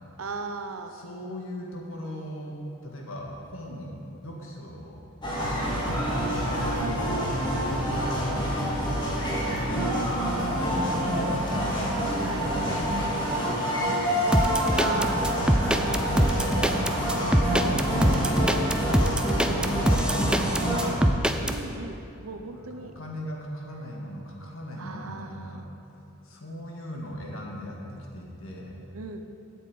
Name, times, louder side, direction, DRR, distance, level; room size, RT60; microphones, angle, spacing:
voice 1, 0.2-1.0 6.8-7.3 12.2-12.5 14.7-15.5 19.6-19.8 21.5-22.9 24.8-25.7 28.9-29.2, right 3 dB, 85° right, 7 dB, 0.8 m, -37 dB
voice 2, 0.9-2.6 2.8-4.0 4.2-6.8 7.7-8.5 9.0-9.9 10.5-11.9 12.6-14.5 17.4-20.8 22.4-25.7 26.2-28.7, equal, 65° left, -1 dB, 1.9 m, -39 dB
sound 1, 5.2-20.9, equal, 20° left, 2.1 m, -27 dB
sound 2, 14.3-21.6, equal, 5° right, 0.4 m, -23 dB
8.4 x 7.2 x 8.6 m, 2.7 s
head